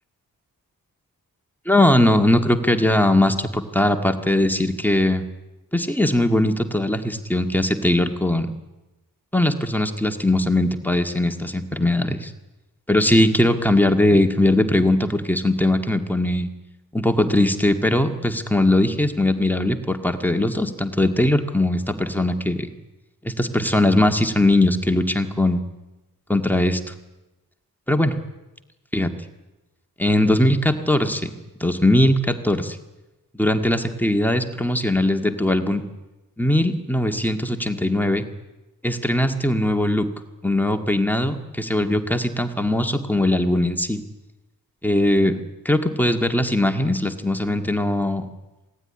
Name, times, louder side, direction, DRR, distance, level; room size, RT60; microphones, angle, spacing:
voice 1, 1.7-5.2 5.7-8.5 9.3-12.3 12.9-16.5 16.9-22.7 23.2-25.6 26.3-26.9 27.9-28.1 28.9-29.1 30.0-31.3 31.6-32.8 33.3-35.8 36.4-38.3 38.8-40.1 40.4-44.0 44.8-45.4 45.7-48.3, left 1 dB, 5° left, 5 dB, 2.0 m, -20 dB
27.0 x 18.0 x 10.0 m, 1.0 s
wide cardioid pair, 125°, 38 cm